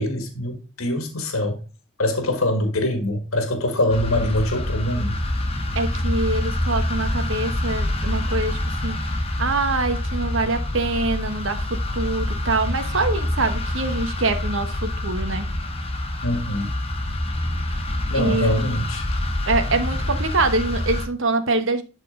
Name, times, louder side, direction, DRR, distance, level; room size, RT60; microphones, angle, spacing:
voice 1, 0.0-1.6 2.0-5.2 16.2-16.7 18.1-19.1, left 1 dB, 85° left, 1.6 m, -24 dB
sound 1, 3.9-21.1, left 1 dB, 30° left, 1.4 m, -26 dB
voice 2, 5.7-9.0 9.4-15.5 18.1-18.8 19.5-21.8, right 3 dB, 65° right, 1.2 m, -24 dB
11.5 x 4.2 x 3.8 m
head